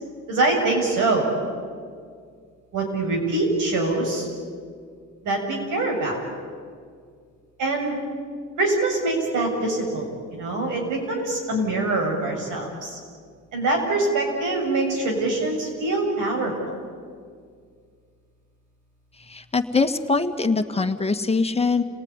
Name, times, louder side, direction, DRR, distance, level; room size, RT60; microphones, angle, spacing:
voice 1, 0.3-1.3 2.7-4.3 5.2-6.2 7.6-8.0 8.6-13.0 13.5-16.5, right 2 dB, 85° right, 1 dB, 7.3 m, -24 dB
voice 2, 19.3-21.8, left 4 dB, 20° left, 6 dB, 1.8 m, -22 dB
29.5 x 18.5 x 9.9 m, 2.1 s
cardioid pair, 90°, 30 cm